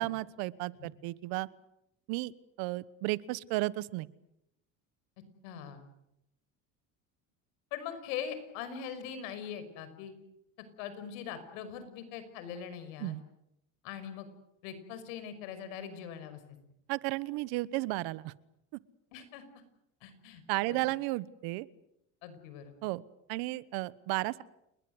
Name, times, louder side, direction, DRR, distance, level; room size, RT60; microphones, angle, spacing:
voice 1, 0.0-1.5 2.1-2.3 2.6-4.1 13.0-13.2 16.9-18.3 20.5-21.7 22.8-23.0 23.3-24.4, right 20 dB, 75° right, 18 dB, 1.2 m, -33 dB
voice 2, 5.4-5.8 7.7-10.1 10.8-13.2 13.8-14.3 14.6-16.6 19.1-19.5 20.0-20.9 22.2-22.7, left 8 dB, 85° left, 11 dB, 5.8 m, -42 dB
29.5 x 21.5 x 8.0 m, 0.83 s
supercardioid pair, 110°, 38 cm